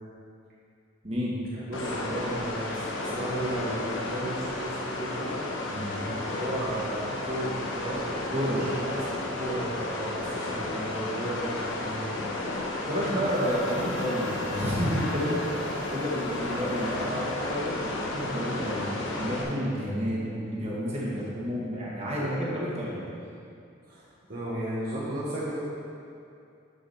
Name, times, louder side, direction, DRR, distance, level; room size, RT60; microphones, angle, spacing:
voice 1, 1.0-1.4 5.7-6.0 8.3-8.7 10.1-10.2 12.8-23.0, equal, 30° right, -6 dB, 1.8 m, -30 dB
sound 1, 1.7-19.4, left 2 dB, 70° left, 1.2 m, -33 dB
voice 2, 1.7-5.3 5.9-12.2 22.2-22.3 23.9-25.5, right 1 dB, 50° right, -8 dB, 1.5 m, -34 dB
Harmonica, 13.2-18.0, right 1 dB, ahead, 0.9 m, -47 dB
12.0 x 5.6 x 4.3 m, 2.5 s
head